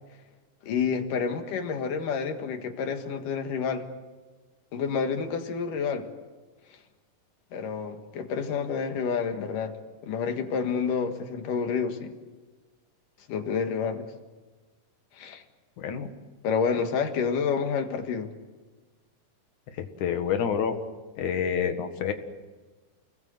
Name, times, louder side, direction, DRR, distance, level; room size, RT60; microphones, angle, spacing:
voice 1, 0.6-3.9 4.7-6.1 7.5-12.2 13.3-14.1 15.2-15.4 16.4-18.3, left 6 dB, 85° left, 6 dB, 3.3 m, -29 dB
voice 2, 15.8-16.1 19.8-20.8 21.2-22.1, left 7 dB, 70° left, 7 dB, 3.2 m, -28 dB
29.5 x 20.5 x 8.0 m, 1.3 s
omnidirectional pair, 3.7 m